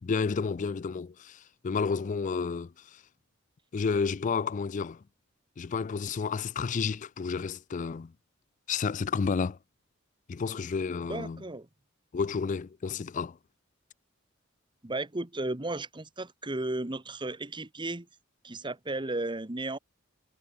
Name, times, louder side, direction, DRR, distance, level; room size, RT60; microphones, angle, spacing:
voice 1, 0.0-3.0 3.7-5.0 5.6-8.1 8.7-9.6 10.3-11.4 12.1-13.4, left 5 dB, 40° left, 0.4 m, -31 dB
voice 2, 11.1-11.7 14.8-18.1 18.4-19.8, right 2 dB, 25° right, 1.3 m, -34 dB
head